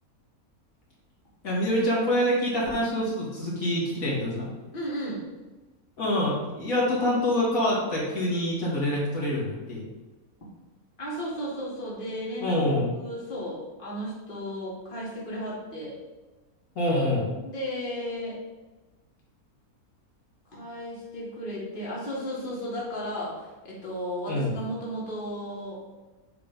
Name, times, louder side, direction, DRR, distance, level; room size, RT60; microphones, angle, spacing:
voice 1, 1.4-4.5 6.0-9.9 12.4-12.9 16.8-17.3 24.3-24.6, left 1 dB, 75° left, -5 dB, 2.1 m, -26 dB
voice 2, 4.7-5.2 11.0-12.6 12.9-16.0 17.4-18.4 20.5-25.8, equal, 35° left, -6 dB, 1.9 m, -34 dB
7.0 x 3.4 x 5.1 m, 1.2 s
omnidirectional pair, 1.5 m